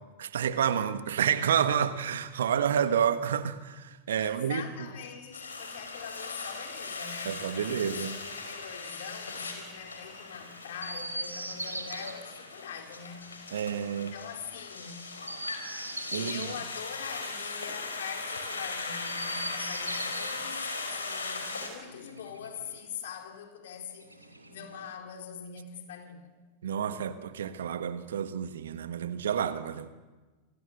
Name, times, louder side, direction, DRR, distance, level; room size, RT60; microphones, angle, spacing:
voice 1, 0.2-4.6 7.2-8.2 13.5-14.1 16.1-16.4 26.6-29.9, right 8 dB, 65° right, 1.5 m, -29 dB
voice 2, 4.2-13.4 13.9-15.0 16.1-24.1 24.5-26.4, left 8 dB, 60° left, 4.2 m, -43 dB
sound 1, 4.9-10.3, left 3 dB, 15° left, 3.4 m, -54 dB
sound 2, 5.3-21.7, left 3 dB, 75° left, 5.0 m, -39 dB
Chirp tweet, 10.8-12.1 15.1-16.6 18.9-20.4 21.8-22.9 24.0-24.9, right 2 dB, 85° right, 2.9 m, -40 dB
28.5 x 23.5 x 8.1 m
figure-of-eight pair, 90°, 0 cm